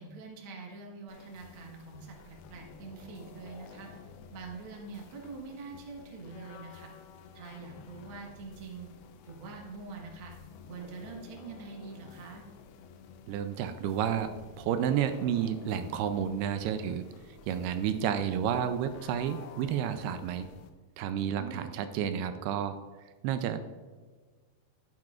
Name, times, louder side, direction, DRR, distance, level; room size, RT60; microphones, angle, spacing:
voice 1, 0.0-3.9 4.3-6.9 7.3-8.9 9.2-10.3 10.7-12.5 21.4-21.7, right 4 dB, 65° right, 0 dB, 1.2 m, -45 dB
sound 1, 1.1-20.7, left 6 dB, 85° left, 2.6 m, -52 dB
voice 2, 13.3-14.3 14.6-17.0 17.5-20.5 21.0-22.8 23.2-23.6, right 9 dB, 80° right, 9 dB, 2.5 m, -30 dB
12.0 x 9.6 x 2.4 m, 1.4 s
omnidirectional pair, 4.6 m